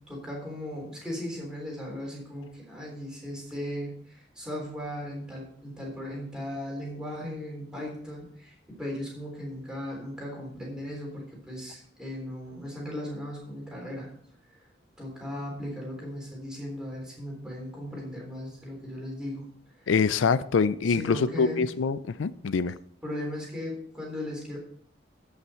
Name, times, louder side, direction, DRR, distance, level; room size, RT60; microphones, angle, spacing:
voice 1, 0.0-14.1 15.0-19.5 19.8-19.9 20.9-21.7 23.0-24.6, left 1 dB, 5° right, 3.6 m, -37 dB
voice 2, 19.9-22.8, left 5 dB, 85° left, 0.4 m, -25 dB
14.0 x 5.8 x 4.4 m
head